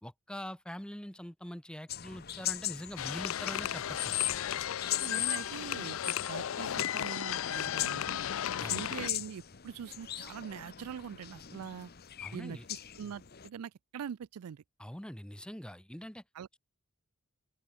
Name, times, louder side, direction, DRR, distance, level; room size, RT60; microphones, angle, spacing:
voice 1, 0.0-4.2 8.6-8.8 12.2-12.7 14.8-16.2, equal, 5° left, 0.8 m, -43 dB
sound 1, 1.9-13.5, left 13 dB, 45° left, 0.9 m, -39 dB
sound 2, 3.0-9.1, left 10 dB, 60° left, 0.4 m, -35 dB
voice 2, 5.0-8.2 8.6-11.9 12.3-14.6 16.3-16.5, right 7 dB, 85° right, 0.4 m, -43 dB
open air
head